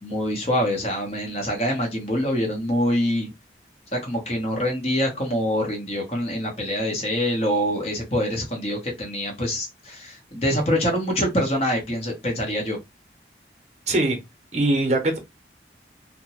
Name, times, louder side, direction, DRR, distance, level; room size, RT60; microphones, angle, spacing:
voice 1, 0.0-3.3 3.9-12.8, equal, 35° left, 0.9 m, -25 dB
voice 2, 13.9-14.2 14.5-15.2, right 2 dB, 40° right, 0.8 m, -21 dB
2.8 x 2.1 x 2.8 m
head